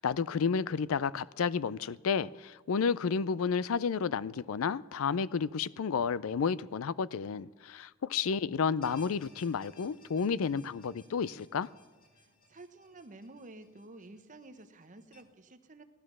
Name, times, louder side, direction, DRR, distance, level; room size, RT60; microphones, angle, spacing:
voice 1, 0.0-11.7, left 6 dB, 85° left, 0.4 m, -31 dB
sound 1, 8.8-15.2, left 2 dB, 45° left, 2.2 m, -60 dB
voice 2, 12.1-15.8, right 2 dB, 35° right, 1.0 m, -51 dB
17.5 x 12.0 x 6.2 m
head